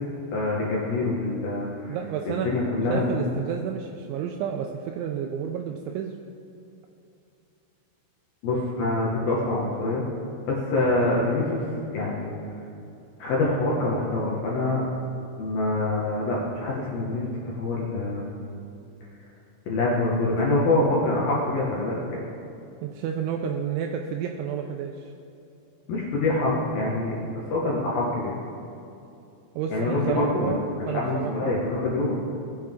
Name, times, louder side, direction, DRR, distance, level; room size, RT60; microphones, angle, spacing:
voice 1, 0.3-2.0 2.2-3.4 8.4-10.0 10.5-11.6 11.9-12.3 13.2-14.8 15.4-18.3 19.7-22.2 25.9-27.1 27.5-28.3 29.7-32.2, left 2 dB, 70° left, -5 dB, 2.3 m, -25 dB
voice 2, 1.9-2.5 2.9-6.1 22.8-25.1 29.6-31.5, right 8 dB, 85° right, 3 dB, 2.7 m, -30 dB
19.5 x 7.7 x 3.7 m, 2.7 s
omnidirectional pair, 5.9 m